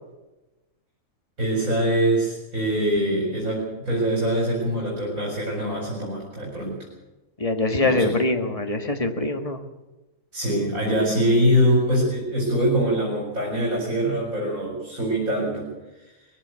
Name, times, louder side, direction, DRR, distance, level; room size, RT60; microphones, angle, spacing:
voice 1, 1.4-6.9 7.7-8.2 10.3-15.7, equal, 70° right, -2 dB, 5.0 m, -23 dB
voice 2, 7.4-9.6, left 2 dB, 25° left, 6 dB, 1.6 m, -23 dB
20.5 x 15.5 x 8.0 m, 1.1 s
omnidirectional pair, 1.5 m